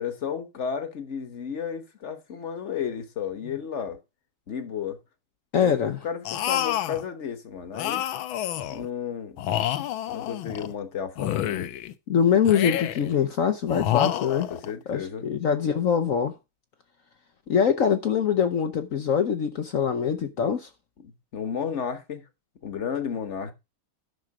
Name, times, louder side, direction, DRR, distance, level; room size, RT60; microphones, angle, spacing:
voice 1, 0.0-4.0 4.5-5.0 5.6-5.8 6.0-8.0 8.7-9.4 10.1-11.6 14.5-15.3 21.0-22.2 22.6-23.5, left 7 dB, 40° left, 1.3 m, -33 dB
voice 2, 5.5-6.0 12.1-14.5 14.9-16.3 17.5-20.7, left 7 dB, 60° left, 0.8 m, -23 dB
sound 1, 6.2-7.0 7.7-8.9 9.4-10.7 11.2-11.9 12.4-13.1 13.7-14.7, left 12 dB, 80° left, 1.5 m, -28 dB
10.5 x 6.4 x 4.8 m
omnidirectional pair, 2.2 m